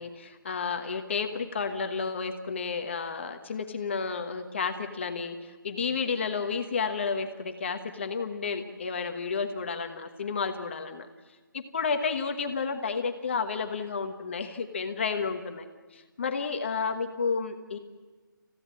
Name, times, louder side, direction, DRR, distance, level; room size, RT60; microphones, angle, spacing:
voice 1, 0.0-11.1 11.5-15.7 15.9-17.8, left 5 dB, 35° left, 6 dB, 1.2 m, -31 dB
29.0 x 16.0 x 7.5 m, 1.3 s
hypercardioid pair, 170°, 11 cm